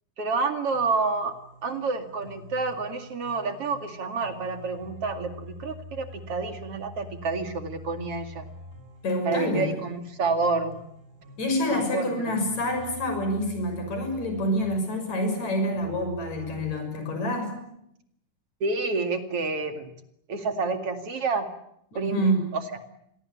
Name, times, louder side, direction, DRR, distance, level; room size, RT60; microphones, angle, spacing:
voice 1, 0.2-1.4 1.6-8.5 9.2-10.8 11.7-12.4 18.6-19.9 20.3-21.5 21.9-22.2 22.5-22.8, right 4 dB, 50° right, 7 dB, 3.1 m, -29 dB
sound 1, 0.7-16.7, left 2 dB, 30° right, 6.9 m, -46 dB
voice 2, 9.0-9.7 11.4-17.6 21.9-22.5, equal, 65° left, 5 dB, 7.8 m, -27 dB
29.0 x 23.0 x 8.5 m, 0.77 s
omnidirectional pair, 3.5 m